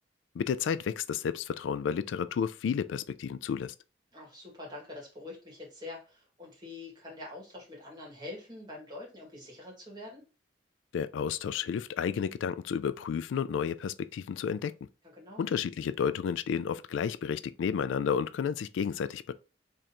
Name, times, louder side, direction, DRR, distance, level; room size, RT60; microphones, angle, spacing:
voice 1, 0.3-3.7 10.9-14.7 15.4-19.3, left 7 dB, 85° left, 0.3 m, -31 dB
voice 2, 4.1-10.2 15.2-15.5, left 2 dB, 25° right, 2.0 m, -45 dB
3.7 x 3.3 x 2.9 m
head